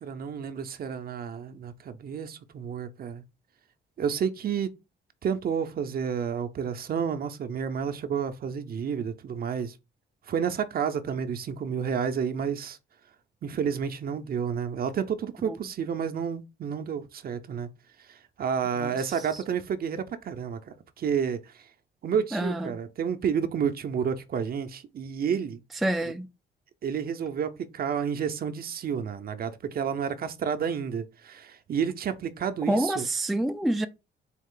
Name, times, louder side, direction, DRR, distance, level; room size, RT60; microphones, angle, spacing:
voice 1, 0.0-3.2 4.0-4.7 5.2-9.7 10.3-12.8 13.4-17.7 18.1-21.5 22.0-25.6 26.8-33.0, right 7 dB, 50° right, 0.6 m, -30 dB
voice 2, 22.3-22.8 25.8-26.3 32.7-33.9, right 1 dB, ahead, 0.3 m, -27 dB
4.2 x 2.4 x 3.7 m
cardioid pair, 90°, 20 cm